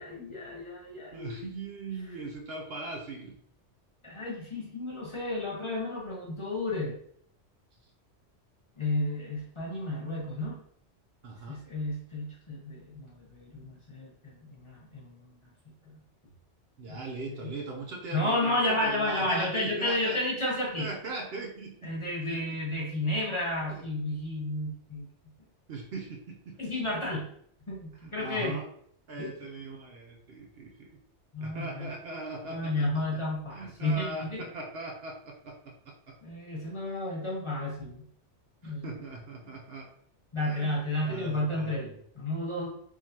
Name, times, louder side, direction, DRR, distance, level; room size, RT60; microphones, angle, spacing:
voice 1, 0.0-1.4 4.0-7.0 8.8-10.6 11.5-15.3 15.8-16.0 16.9-17.0 17.3-17.5 18.1-20.9 21.8-25.0 26.6-27.3 27.7-28.6 29.2-29.3 31.3-31.9 32.5-34.5 36.2-38.0 38.6-39.0 40.3-42.7, left 1 dB, 25° left, -4 dB, 0.9 m, -32 dB
voice 2, 1.1-3.4 11.2-11.6 16.8-20.2 20.8-21.9 22.2-22.6 23.7-23.8 25.7-26.9 28.0-28.7 29.1-31.0 31.4-33.2 33.5-36.2 38.6-39.9 40.4-42.0, right 3 dB, 60° right, 0 dB, 0.8 m, -40 dB
3.8 x 3.1 x 2.8 m, 0.66 s
omnidirectional pair, 1.2 m